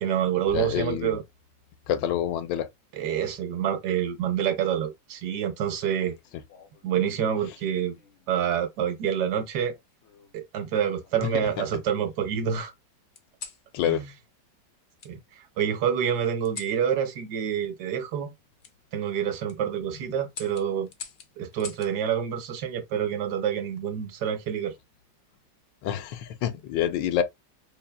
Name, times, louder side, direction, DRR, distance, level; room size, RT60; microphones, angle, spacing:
voice 1, 0.0-1.2 2.9-6.2 6.8-8.0 8.3-9.7 10.3-12.7 13.9-14.1 15.0-15.2 15.6-18.3 18.9-20.9 21.4-24.7, right 8 dB, 70° right, 1.1 m, -27 dB
voice 2, 0.5-1.2 1.9-2.7 11.2-11.5 13.7-14.0 25.8-27.2, left 10 dB, 80° left, 1.3 m, -27 dB
sound 1, 5.8-6.9 7.9-8.3 9.6-10.4 11.0-11.9 13.1-13.6 15.0-15.1 16.4-16.8 18.6-18.7 19.3-19.6 20.3-21.9 23.4-23.8, left 6 dB, 65° left, 0.7 m, -45 dB
5.5 x 2.4 x 2.2 m
omnidirectional pair, 1.9 m